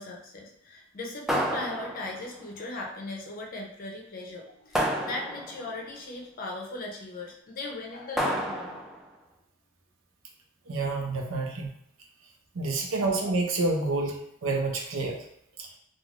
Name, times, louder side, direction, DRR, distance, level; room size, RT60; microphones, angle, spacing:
voice 1, 0.0-8.8, left 2 dB, 45° left, -1 dB, 0.6 m, -38 dB
sound 1, 1.3-2.4 4.7-5.7 8.2-9.0, equal, ahead, 0.3 m, -30 dB
voice 2, 10.7-11.7 12.5-15.2 15.6-15.7, right 3 dB, 80° right, 2 dB, 0.6 m, -28 dB
3.1 x 2.4 x 2.4 m, 0.75 s
head